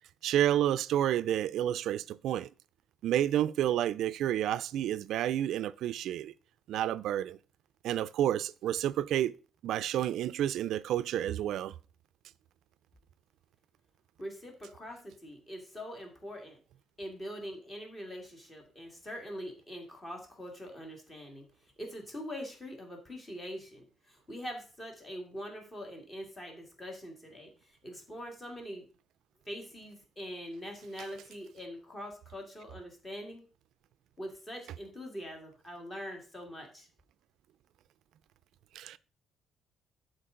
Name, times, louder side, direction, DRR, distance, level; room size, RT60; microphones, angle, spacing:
voice 1, 0.2-2.5 3.0-6.3 6.7-7.4 7.8-9.4 9.6-11.7 38.7-39.0, right 11 dB, 70° right, 0.4 m, -30 dB
voice 2, 14.2-16.6 17.0-21.5 21.8-28.8 29.5-33.4 34.2-36.9, equal, 15° left, 1.9 m, -43 dB
11.0 x 4.6 x 3.7 m
cardioid pair, 170°, 0 cm